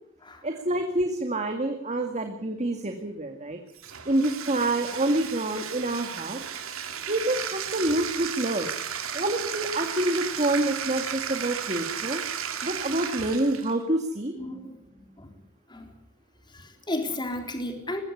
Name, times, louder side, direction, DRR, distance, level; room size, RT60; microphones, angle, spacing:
voice 1, 0.4-3.6 4.1-6.4 7.1-8.7 9.1-12.2 12.6-14.3, right 1 dB, 35° right, 4 dB, 2.1 m, -27 dB
Bathtub (filling or washing), 3.7-13.8, right 8 dB, 90° right, 2.8 m, -34 dB
voice 2, 14.4-15.3 15.7-15.9 16.5-18.0, left 1 dB, 20° left, 4 dB, 3.7 m, -34 dB
21.0 x 16.0 x 9.9 m, 0.75 s
head